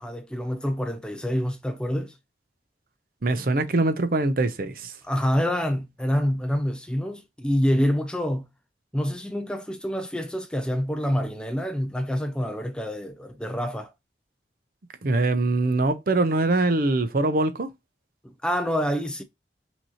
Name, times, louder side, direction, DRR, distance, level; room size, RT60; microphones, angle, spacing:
voice 1, 0.0-2.1 5.0-8.5 8.9-13.9 18.4-19.2, equal, 5° left, 0.4 m, -27 dB
voice 2, 3.2-4.9 15.0-17.7, right 2 dB, 55° right, 0.6 m, -23 dB
5.8 x 2.7 x 2.9 m
head